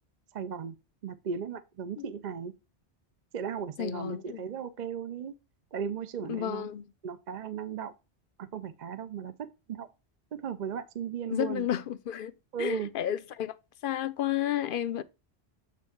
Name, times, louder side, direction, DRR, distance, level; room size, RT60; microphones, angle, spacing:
voice 1, 0.3-0.8 1.0-2.5 3.3-5.3 5.7-6.7 7.0-7.9 8.4-9.9 10.3-11.7 12.5-12.9, right 7 dB, 50° right, 0.6 m, -36 dB
voice 2, 3.8-4.4 6.3-6.8 11.3-12.3 12.6-13.6 13.8-15.0, left 11 dB, 60° left, 0.7 m, -31 dB
8.4 x 3.5 x 4.3 m
omnidirectional pair, 1.1 m